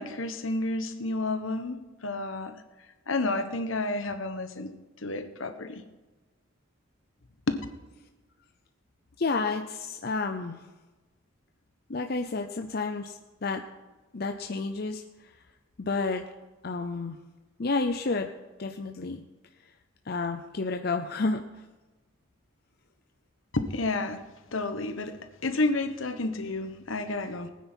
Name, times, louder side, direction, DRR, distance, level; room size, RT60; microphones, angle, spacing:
voice 1, 0.0-2.5 3.1-4.7 5.0-5.8 7.5-7.6 23.5-24.2 24.5-27.5, left 2 dB, 75° left, 8 dB, 1.2 m, -30 dB
voice 2, 9.2-10.6 11.9-13.1 13.4-13.6 14.1-15.0 15.8-16.2 16.6-17.2 17.6-18.3 18.6-19.2 20.1-21.4, left 3 dB, 50° left, 5 dB, 0.6 m, -30 dB
20.0 x 9.3 x 4.5 m, 1.2 s
head